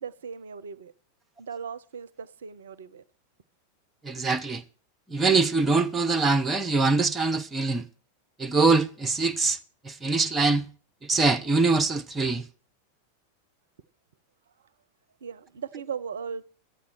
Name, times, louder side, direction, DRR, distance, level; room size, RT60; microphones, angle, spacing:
voice 1, 0.0-0.9 1.4-3.0 15.2-16.4, right 6 dB, 65° right, 0.5 m, -37 dB
voice 2, 4.0-4.6 5.1-7.9 8.4-9.6 9.8-10.6 11.0-12.5, right 3 dB, 15° right, 0.7 m, -23 dB
13.5 x 8.6 x 6.1 m
figure-of-eight pair, 90°, 0 cm